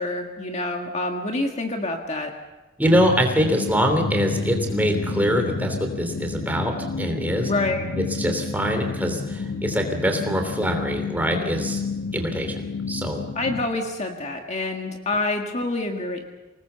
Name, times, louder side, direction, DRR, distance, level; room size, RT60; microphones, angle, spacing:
voice 1, 0.0-2.3 7.5-7.8 13.4-16.2, left 2 dB, 30° left, 2 dB, 1.8 m, -27 dB
sound 1, 2.8-13.7, left 4 dB, 80° left, 1.3 m, -30 dB
voice 2, 2.8-7.5 7.9-11.8 12.1-12.6 12.9-13.2, equal, 10° right, 4 dB, 3.1 m, -24 dB
26.5 x 19.5 x 7.0 m, 1.1 s
head